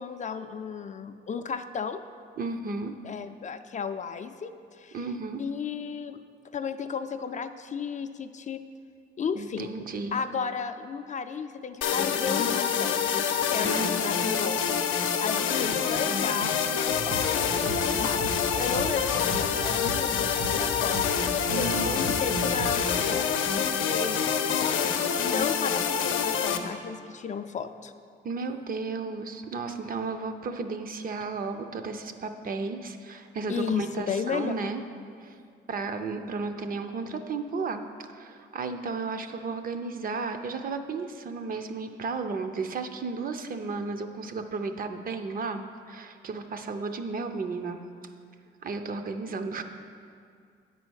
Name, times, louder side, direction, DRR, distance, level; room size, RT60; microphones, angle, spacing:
voice 1, 0.0-2.0 3.0-5.0 5.4-6.2 6.5-8.6 9.2-9.7 10.1-13.0 13.5-14.6 15.2-21.0 21.6-23.3 23.8-24.2 25.2-27.9 33.5-34.5, left 6 dB, 40° left, 9 dB, 0.4 m, -33 dB
voice 2, 2.4-2.9 4.9-5.4 9.3-10.2 13.6-14.2 15.7-16.2 21.5-22.3 28.2-34.8 35.2-35.4 35.7-37.8 38.1-47.8 48.6-49.6, right 4 dB, 45° right, 8 dB, 0.6 m, -34 dB
sound 1, 11.8-26.6, left 7 dB, 85° left, 0.6 m, -26 dB
sound 2, 16.9-23.0, right 2 dB, 80° right, 1.0 m, -37 dB
8.7 x 4.1 x 6.3 m, 2.3 s
cardioid pair, 90°, 20 cm